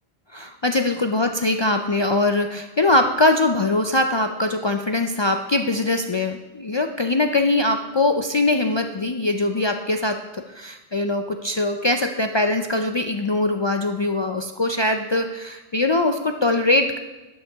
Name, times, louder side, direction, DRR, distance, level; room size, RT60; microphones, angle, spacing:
voice 1, 0.3-17.0, left 2 dB, 50° left, 5 dB, 0.3 m, -22 dB
12.5 x 8.8 x 3.5 m, 1.2 s
omnidirectional pair, 1.1 m